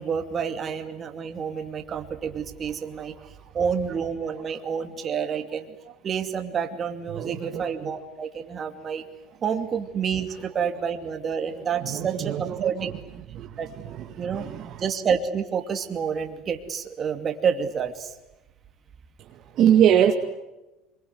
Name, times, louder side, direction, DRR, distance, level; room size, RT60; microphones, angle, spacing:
voice 1, 0.0-5.7 6.0-9.0 9.4-12.9 13.6-13.7 14.2-14.5 14.8-18.1, right 7 dB, 35° right, 7 dB, 2.7 m, -29 dB
voice 2, 7.1-7.9 11.8-12.9 13.3-13.6 13.8-14.9 19.5-20.1, right 10 dB, 50° right, 4 dB, 2.1 m, -23 dB
25.0 x 23.0 x 9.4 m, 1.0 s
supercardioid pair, 115°, 0 cm